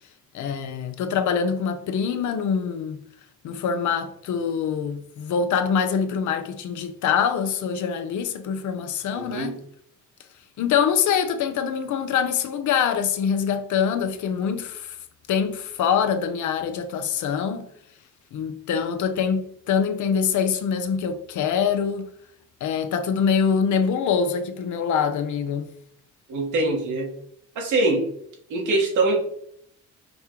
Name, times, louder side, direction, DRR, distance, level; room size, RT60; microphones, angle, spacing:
voice 1, 0.3-3.0 3.4-9.6 10.6-15.0 15.3-17.7 18.3-22.1 22.6-25.7, left 7 dB, 75° left, 0.7 m, -24 dB
voice 2, 9.1-9.5 26.3-27.1 27.5-28.1 28.5-29.2, right 2 dB, 80° right, 1.4 m, -23 dB
5.3 x 2.2 x 4.4 m
cardioid pair, 90°, 30 cm